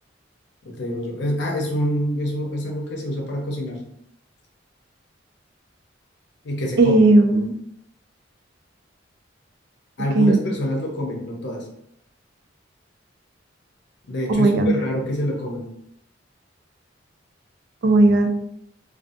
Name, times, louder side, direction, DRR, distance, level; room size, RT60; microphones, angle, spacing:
voice 1, 0.6-3.8 6.4-7.0 10.0-11.7 14.1-15.7, equal, 65° left, 0 dB, 0.6 m, -26 dB
voice 2, 6.8-7.6 10.1-10.4 14.3-14.8 17.8-18.3, right 2 dB, 60° right, 6 dB, 0.3 m, -16 dB
2.6 x 2.3 x 2.4 m, 0.76 s
head